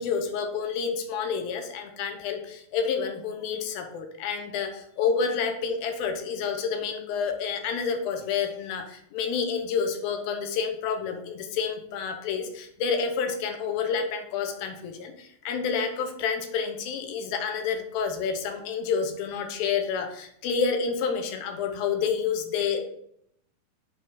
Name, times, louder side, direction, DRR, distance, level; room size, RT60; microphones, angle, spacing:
voice 1, 0.0-22.9, left 6 dB, 80° left, 5 dB, 2.7 m, -29 dB
7.9 x 3.7 x 5.6 m, 0.72 s
omnidirectional pair, 4.3 m